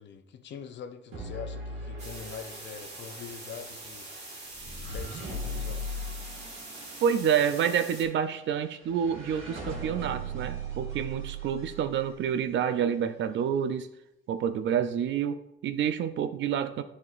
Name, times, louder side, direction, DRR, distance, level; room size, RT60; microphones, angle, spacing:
voice 1, 0.0-4.1 4.6-5.9, left 7 dB, 65° left, 7 dB, 0.7 m, -43 dB
sound 1, 1.1-12.4, right 1 dB, 90° right, 2.0 m, -39 dB
sound 2, 2.0-8.0, right 2 dB, 35° right, 1.9 m, -44 dB
voice 2, 7.0-13.9 14.3-16.8, right 8 dB, 70° right, 11 dB, 0.5 m, -28 dB
10.5 x 4.2 x 2.5 m, 0.84 s
cardioid pair, 90°, 20 cm